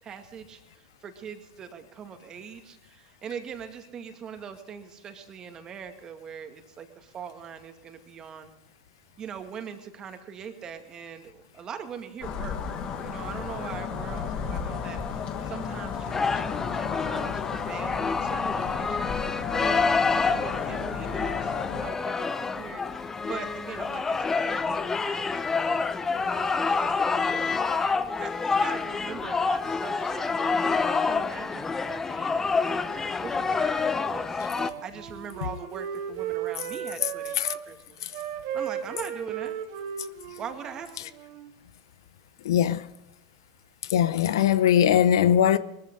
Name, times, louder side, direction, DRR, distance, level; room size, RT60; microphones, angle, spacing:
voice 1, 0.0-8.5 9.2-12.6 13.0-25.8 26.2-27.9 28.2-34.4 34.8-38.0 38.5-39.6 40.4-41.1, right 7 dB, 30° right, 2.1 m, -42 dB
sound 1, 12.2-21.9, left 7 dB, 40° left, 1.8 m, -33 dB
sound 2, 16.1-34.7, left 4 dB, 15° left, 0.8 m, -28 dB
Wind instrument woodwind instrument, 34.5-37.6 38.0-41.5, right 9 dB, 60° right, 1.9 m, -35 dB
voice 2, 42.4-42.9 43.8-45.6, left 10 dB, 70° left, 0.7 m, -21 dB
20.0 x 14.0 x 3.9 m
hypercardioid pair, 100°, 2 cm